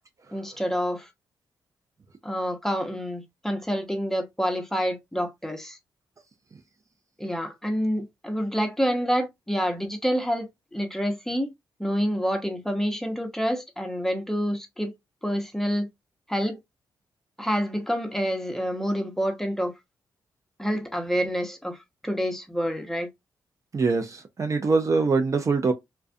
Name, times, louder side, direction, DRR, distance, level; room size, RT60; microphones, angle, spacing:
voice 1, 0.3-1.1 2.2-5.8 7.2-11.5 11.8-14.9 15.2-15.9 16.3-16.6 17.4-19.7 20.6-23.1, equal, 5° left, 0.8 m, -28 dB
voice 2, 23.7-25.7, right 4 dB, 40° right, 0.5 m, -23 dB
2.3 x 2.2 x 2.5 m
supercardioid pair, 55°, 8 cm